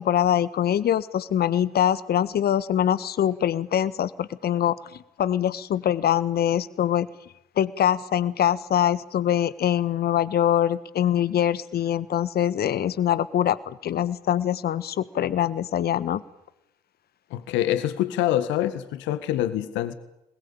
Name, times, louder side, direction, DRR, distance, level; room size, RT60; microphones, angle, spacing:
voice 1, 0.0-4.8 5.2-7.1 7.6-16.2, left 10 dB, 50° left, 1.5 m, -23 dB
voice 2, 17.3-19.9, left 12 dB, 65° left, 1.8 m, -25 dB
28.0 x 21.0 x 8.9 m
hypercardioid pair, 55°, 20 cm